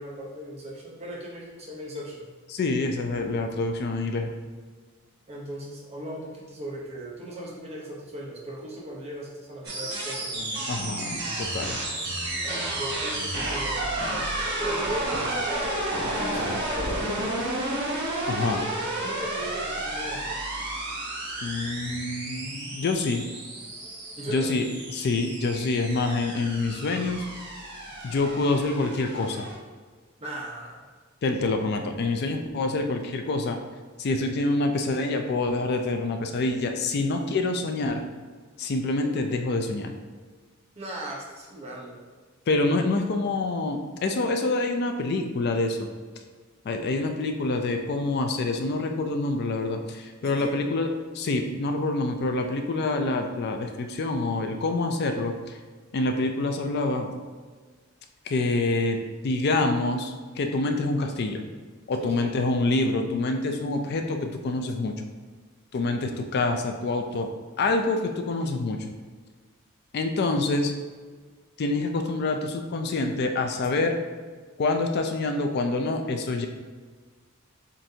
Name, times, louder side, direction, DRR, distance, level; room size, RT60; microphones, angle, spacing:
voice 1, 0.0-2.3 5.3-10.5 12.4-15.8 16.1-17.5 18.9-20.3 24.2-24.5 30.2-30.8 40.8-42.0 50.2-50.6 62.0-62.3, right 1 dB, 30° right, -4 dB, 0.8 m, -38 dB
voice 2, 2.5-4.3 10.7-11.8 18.3-18.6 21.4-23.2 24.3-27.3 28.0-29.5 31.2-33.6 34.0-38.0 38.6-39.9 42.5-45.9 46.6-50.9 51.1-55.6 55.9-57.1 58.3-59.0 59.2-61.4 61.9-64.9 65.7-67.3 67.6-68.8 69.9-70.7 71.6-74.0 74.6-76.5, left 2 dB, 50° left, 5 dB, 0.4 m, -26 dB
sound 1, 9.6-29.5, right 1 dB, 55° right, 1.2 m, -31 dB
7.4 x 2.6 x 2.7 m, 1.5 s
head